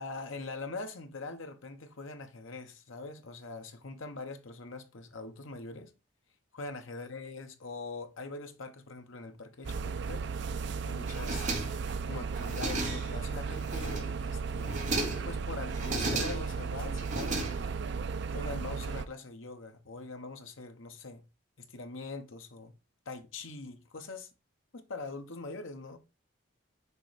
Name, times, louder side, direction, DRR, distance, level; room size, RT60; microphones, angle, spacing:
voice 1, 0.0-5.9 6.5-10.3 10.8-11.5 12.1-14.9 15.2-17.7 18.3-21.2 21.6-22.7 23.1-24.3 24.7-26.0, left 3 dB, 70° left, 1.1 m, -43 dB
sound 1, 9.6-19.1, right 5 dB, 55° right, 0.4 m, -35 dB
sound 2, 11.1-12.0 12.3-13.2 13.6-14.2 14.6-15.3 15.7-16.6 17.0-17.9, right 2 dB, 35° right, 1.3 m, -35 dB
6.8 x 3.1 x 4.9 m
head